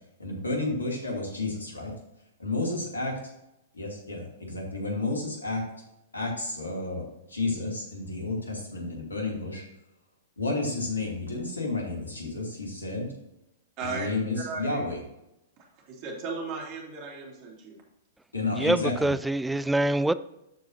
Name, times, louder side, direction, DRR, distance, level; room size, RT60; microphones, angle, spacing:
voice 1, 0.2-1.9 2.4-3.2 3.7-5.7 6.1-9.6 10.4-13.1 13.8-15.0 18.3-19.1, left 2 dB, 80° left, 2.7 m, -31 dB
voice 2, 13.8-14.1 14.4-14.8 15.9-17.8, right 4 dB, 40° right, 2.8 m, -36 dB
voice 3, 18.5-20.1, right 1 dB, 5° right, 0.3 m, -25 dB
13.5 x 4.8 x 2.8 m
figure-of-eight pair, 105°, 0 cm